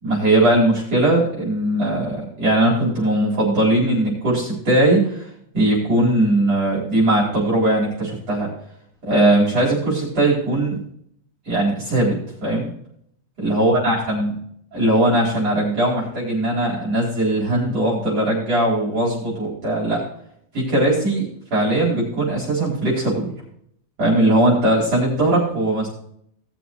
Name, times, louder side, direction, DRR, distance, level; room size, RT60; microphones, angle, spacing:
voice 1, 0.0-5.3 5.5-8.5 9.1-10.8 11.5-12.7 13.4-14.4 14.7-20.0 20.5-23.3 24.0-25.9, right 1 dB, 35° right, -5 dB, 5.2 m, -19 dB
19.5 x 7.0 x 3.1 m, 0.68 s
omnidirectional pair, 5.2 m